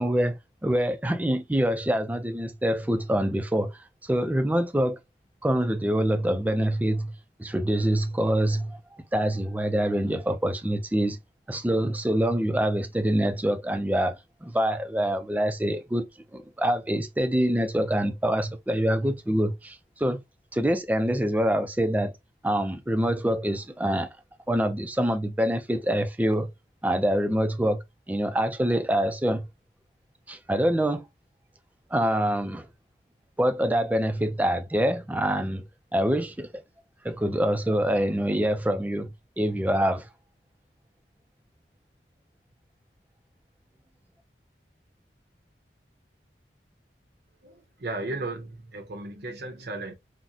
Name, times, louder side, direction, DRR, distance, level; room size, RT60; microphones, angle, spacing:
voice 1, 0.0-5.0 5.4-7.1 7.4-8.8 9.1-11.2 11.5-16.1 16.3-20.2 20.5-22.1 22.4-24.1 24.5-26.5 26.8-29.5 30.3-31.0 31.9-32.7 33.4-35.6 35.9-36.6 37.0-40.1, equal, 10° right, 0.3 m, -25 dB
voice 2, 47.4-49.9, right 2 dB, 60° right, 0.6 m, -35 dB
3.8 x 2.0 x 2.7 m
head